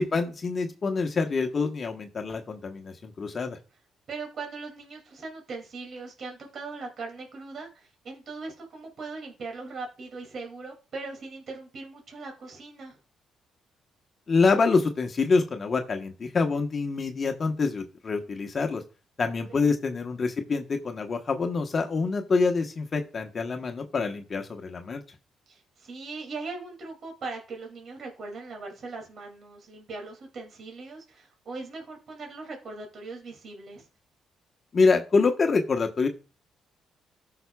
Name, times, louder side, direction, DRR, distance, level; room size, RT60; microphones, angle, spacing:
voice 1, 0.0-3.6 14.3-18.8 19.2-25.0 34.7-36.1, left 4 dB, 40° left, 4 dB, 1.0 m, -26 dB
voice 2, 4.1-12.9 19.5-19.7 25.5-33.8, right 3 dB, 55° right, 2 dB, 2.4 m, -40 dB
14.0 x 5.8 x 2.3 m, 0.33 s
cardioid pair, 90°, 0 cm